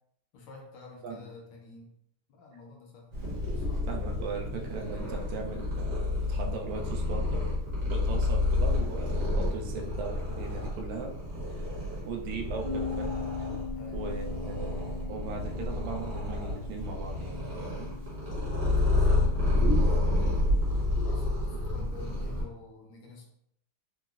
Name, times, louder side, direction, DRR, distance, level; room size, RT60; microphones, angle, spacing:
voice 1, 0.3-1.9 2.3-3.9 8.0-8.3 13.8-14.0 18.2-20.2 21.0-23.3, left 3 dB, 75° left, 1 dB, 1.2 m, -49 dB
Purr, 3.1-22.4, left 2 dB, 50° right, 1.1 m, -29 dB
voice 2, 3.9-7.5 7.9-11.2 11.5-11.7 12.0-13.5 13.9-17.9 21.8-21.9, right 4 dB, 75° right, 1 dB, 1.2 m, -38 dB
Bass guitar, 12.6-18.9, left 6 dB, 40° left, 0.5 m, -41 dB
3.8 x 2.1 x 2.3 m, 0.75 s
omnidirectional pair, 2.3 m